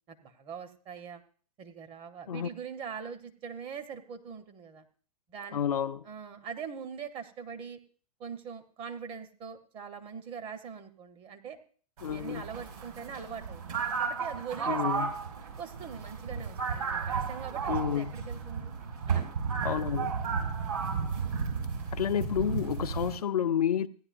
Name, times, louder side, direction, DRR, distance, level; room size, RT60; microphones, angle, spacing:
voice 1, 0.1-1.2 1.6-4.9 5.3-5.6 6.0-7.8 8.2-11.6 12.0-13.6 14.0-15.1 15.6-18.7 19.1-19.2 20.2-20.7, right 7 dB, 25° right, 1.0 m, -42 dB
voice 2, 5.5-6.0 12.0-12.5 14.7-15.1 17.7-18.1 19.6-20.2 21.9-23.9, left 9 dB, 65° left, 0.6 m, -30 dB
sound 1, 12.0-23.2, right 5 dB, 65° right, 4.8 m, -33 dB
16.0 x 10.0 x 2.6 m
figure-of-eight pair, 110°, 21 cm